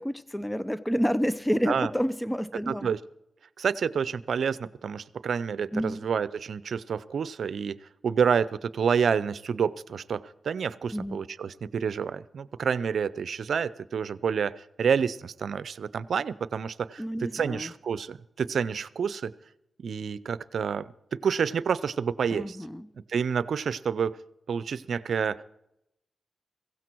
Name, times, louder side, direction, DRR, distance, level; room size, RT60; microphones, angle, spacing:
voice 1, 0.0-2.9 5.7-6.1 10.9-11.2 17.0-17.7 22.3-22.9, equal, 10° left, 16 dB, 0.7 m, -29 dB
voice 2, 2.7-3.0 3.6-7.8 8.0-14.5 14.8-17.0 17.3-19.3 19.8-22.6 23.1-24.2 24.5-25.4, right 6 dB, 75° right, 18 dB, 0.6 m, -28 dB
16.5 x 16.0 x 4.6 m, 0.81 s
supercardioid pair, 40°, 0 cm